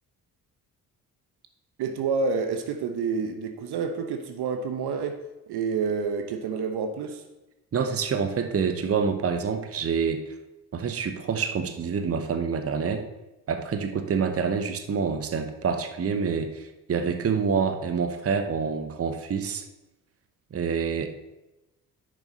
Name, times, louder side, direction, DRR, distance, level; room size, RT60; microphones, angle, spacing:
voice 1, 1.8-7.2, right 5 dB, 55° right, 7 dB, 1.0 m, -29 dB
voice 2, 7.7-10.2 10.7-13.1 13.5-19.6 20.5-21.1, right 6 dB, 30° right, 8 dB, 1.0 m, -27 dB
10.0 x 6.3 x 3.9 m, 0.99 s
hypercardioid pair, 45°, 47 cm